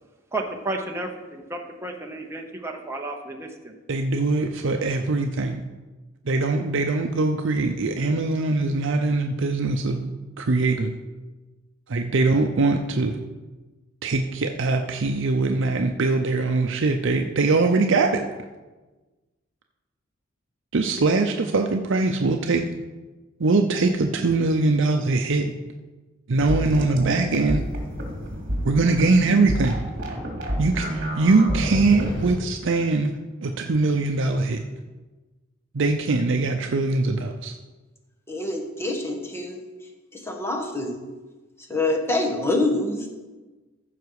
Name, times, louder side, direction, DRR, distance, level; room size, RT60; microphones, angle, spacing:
voice 1, 0.3-3.7, right 2 dB, 15° right, 1 dB, 0.9 m, -32 dB
voice 2, 3.9-5.6 6.3-10.1 10.4-10.9 11.9-13.2 14.0-18.3 20.7-22.7 23.4-25.5 26.3-27.6 28.6-29.8 30.6-34.6 35.7-37.5, right 3 dB, 65° right, 4 dB, 0.6 m, -22 dB
sound 1, 26.4-32.4, equal, 45° right, 2.2 m, -29 dB
voice 3, 38.3-39.6 40.1-41.0 41.7-43.1, left 2 dB, 15° left, 1 dB, 1.3 m, -26 dB
14.5 x 5.9 x 4.8 m, 1.2 s
head